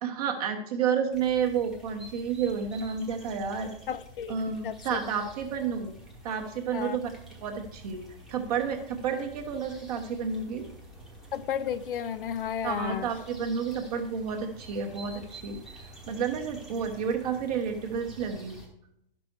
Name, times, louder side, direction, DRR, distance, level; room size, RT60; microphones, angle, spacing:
voice 1, 0.0-3.7 4.3-5.9 6.2-7.1 7.4-8.0 8.3-10.6 12.6-15.6 16.1-18.6, right 6 dB, 40° right, 4 dB, 1.3 m, -30 dB
sound 1, 1.1-18.7, right 1 dB, ahead, 1.0 m, -49 dB
voice 2, 3.9-4.4 4.6-5.0 6.7-7.0 11.3-13.1, left 9 dB, 65° left, 13 dB, 0.6 m, -33 dB
10.5 x 6.1 x 4.6 m, 0.76 s
hypercardioid pair, 160°, 29 cm